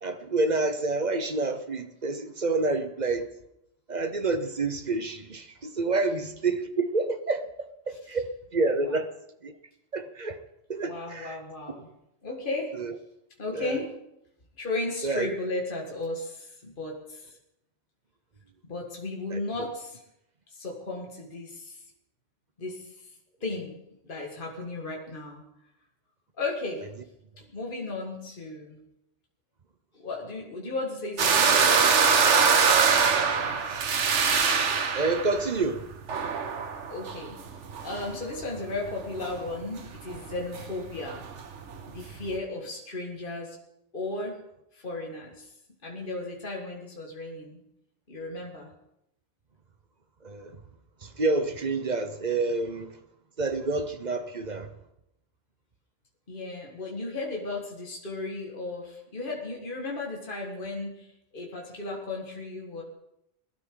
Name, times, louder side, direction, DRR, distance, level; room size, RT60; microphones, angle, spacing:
voice 1, 0.0-3.3 3.9-9.1 9.4-9.5 9.9-10.4 10.7-11.4 12.8-12.9 13.5-13.8 15.0-15.3 19.3-19.4 34.5-35.9 50.2-50.6 51.0-53.0 53.4-54.7, right 3 dB, 40° right, 1.0 m, -28 dB
voice 2, 10.9-11.9 12.2-12.7 13.4-13.9 14.6-17.4 18.6-20.0 20.5-21.8 22.6-23.0 23.4-23.8 24.0-25.4 26.4-26.9 27.4-28.8 29.9-33.6 36.9-37.4 37.8-41.2 41.9-43.6 43.9-44.4 44.7-45.5 45.8-47.6 48.1-48.7 56.3-62.8, left 2 dB, 45° left, 2.1 m, -35 dB
sound 1, 31.2-38.3 38.6-39.5 39.8-39.9 40.1-42.3, right 5 dB, 80° right, 1.4 m, -23 dB
21.0 x 12.0 x 3.9 m
omnidirectional pair, 1.2 m